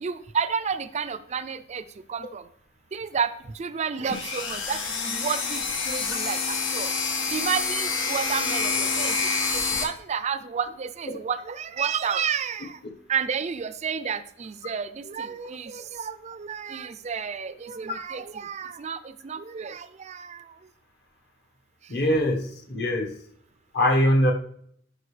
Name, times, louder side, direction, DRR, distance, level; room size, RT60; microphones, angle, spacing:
voice 1, 0.0-1.8 2.1-2.4 2.9-3.3 3.6-6.9 7.3-9.1 9.5-12.8 13.1-20.4, right 6 dB, 35° right, 13 dB, 0.4 m, -31 dB
sound 1, 4.1-9.8, left 4 dB, 90° left, 1.4 m, -27 dB
voice 2, 21.9-23.2 23.7-24.3, equal, 60° left, 3 dB, 1.3 m, -22 dB
11.5 x 5.1 x 3.3 m, 0.65 s
head